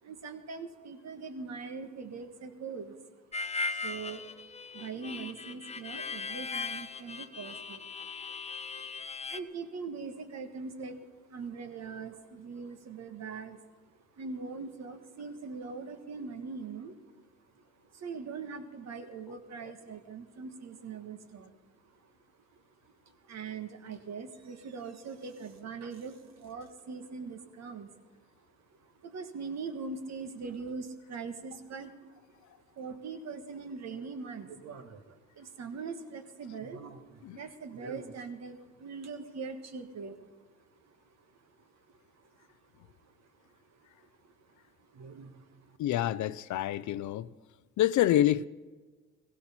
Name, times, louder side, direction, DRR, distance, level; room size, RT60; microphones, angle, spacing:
voice 1, 0.0-3.0 3.4-4.4 4.7-13.8 14.2-17.2 17.5-22.2 22.5-27.9 28.4-28.5 28.7-42.5 42.8-44.3 44.8-45.8, right 4 dB, 60° right, 1.5 m, -42 dB
Harmonica, 3.3-9.4, left 4 dB, 20° left, 0.7 m, -38 dB
voice 2, 45.8-47.3 47.8-48.5, left 12 dB, 70° left, 0.5 m, -27 dB
16.0 x 16.0 x 4.3 m
cardioid pair, 90°, 30 cm